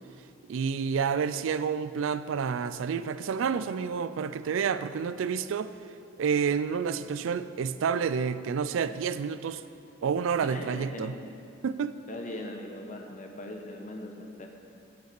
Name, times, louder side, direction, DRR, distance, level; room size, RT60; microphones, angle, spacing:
voice 1, 0.5-5.7 6.2-9.6 10.0-11.1 11.6-11.9, right 6 dB, 80° right, 14 dB, 0.4 m, -29 dB
voice 2, 10.4-11.2 12.1-14.5, left 1 dB, 40° left, 3 dB, 0.9 m, -40 dB
8.0 x 6.5 x 6.7 m, 2.4 s
head